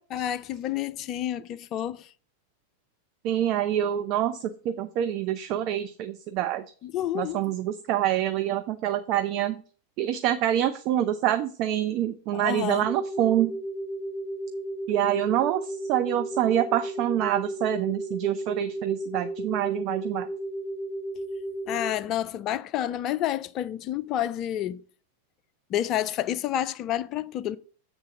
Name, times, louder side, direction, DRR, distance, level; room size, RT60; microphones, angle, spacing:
voice 1, 0.1-2.1 6.8-7.4 12.3-12.9 21.7-24.8 25.7-27.6, left 12 dB, 35° left, 0.4 m, -29 dB
voice 2, 3.2-6.6 7.1-9.6 10.0-13.6 14.9-20.3, right 11 dB, 40° right, 0.5 m, -26 dB
sound 1, 12.9-21.9, right 1 dB, 10° left, 1.2 m, -34 dB
7.6 x 3.8 x 6.0 m
figure-of-eight pair, 90°, 0 cm